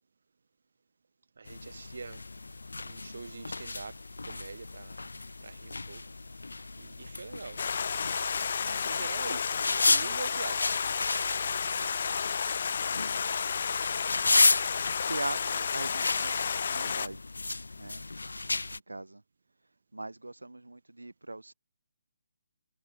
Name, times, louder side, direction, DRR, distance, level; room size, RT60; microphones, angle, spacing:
voice 1, 1.4-5.0 5.4-6.0 6.8-7.7 8.6-10.8, right 4 dB, 60° right, 7.3 m, -44 dB
sound 1, 1.5-18.8, left 3 dB, 75° left, 1.2 m, -33 dB
Stream, 7.6-17.1, left 6 dB, 55° left, 1.4 m, -31 dB
voice 2, 15.1-17.2 17.8-18.1 18.5-19.2 19.9-21.5, right 2 dB, 85° right, 5.5 m, -40 dB
figure-of-eight pair, 145°, 0 cm